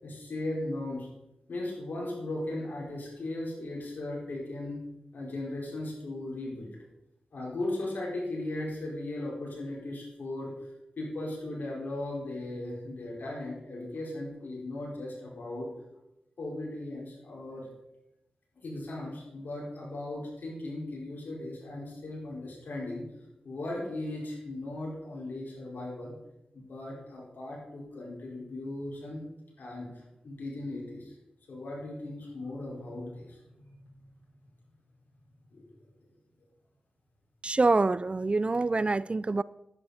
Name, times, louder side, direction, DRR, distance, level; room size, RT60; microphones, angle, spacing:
voice 1, 0.0-1.1 1.5-4.8 5.1-6.8 7.3-10.5 11.0-15.7 16.4-17.7 18.6-23.0 23.4-26.1 26.5-29.2 29.6-29.9 30.2-31.1 31.5-33.9 35.5-35.6, left 2 dB, 70° left, -3 dB, 5.0 m, -37 dB
voice 2, 37.4-39.4, right 3 dB, 35° right, 19 dB, 0.3 m, -26 dB
11.0 x 9.7 x 4.3 m, 0.89 s
cardioid pair, 45°, 3 cm